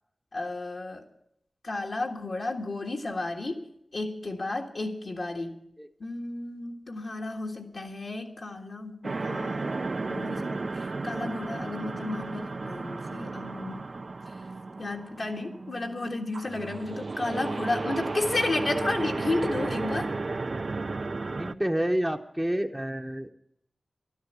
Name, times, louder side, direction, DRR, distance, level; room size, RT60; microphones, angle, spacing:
voice 1, 0.3-1.0 1.6-3.7 3.9-5.6 6.0-10.7 11.0-13.8 14.8-20.1, left 2 dB, 60° left, 1.7 m, -32 dB
sound 1, 9.0-21.5, right 3 dB, 55° right, 0.5 m, -33 dB
voice 2, 21.4-23.3, right 1 dB, 10° right, 0.9 m, -29 dB
12.5 x 11.0 x 8.1 m
cardioid pair, 55°, 0 cm